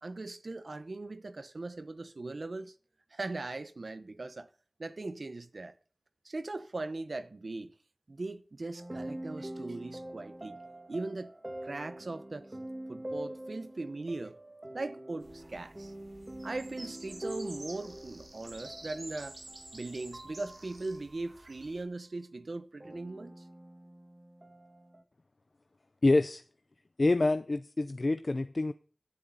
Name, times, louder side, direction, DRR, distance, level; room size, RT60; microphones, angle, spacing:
voice 1, 0.0-2.7 3.1-4.5 4.8-5.7 6.2-7.7 8.1-10.6 10.9-11.3 11.6-12.5 12.9-14.4 14.7-15.9 16.4-19.4 19.7-23.3, right 2 dB, 85° right, 0.9 m, -39 dB
sound 1, 8.7-21.5 22.8-25.0, right 1 dB, 35° right, 2.1 m, -45 dB
sound 2, 15.2-21.8, right 2 dB, 65° right, 3.1 m, -50 dB
voice 2, 26.0-26.4 27.0-28.7, left 2 dB, 70° left, 0.6 m, -26 dB
17.0 x 8.4 x 4.1 m
wide cardioid pair, 55°, 0 cm